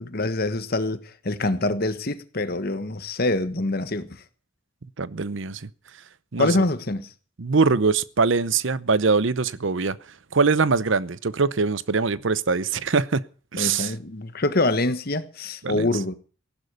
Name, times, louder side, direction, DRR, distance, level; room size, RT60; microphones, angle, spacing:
voice 1, 0.0-4.1 6.4-7.1 13.6-16.1, left 2 dB, 50° left, 1.4 m, -25 dB
voice 2, 5.0-5.7 6.3-6.7 7.4-10.0 10.3-13.2 13.5-13.9 15.6-15.9, right 4 dB, 70° right, 0.8 m, -22 dB
15.0 x 11.5 x 6.8 m
head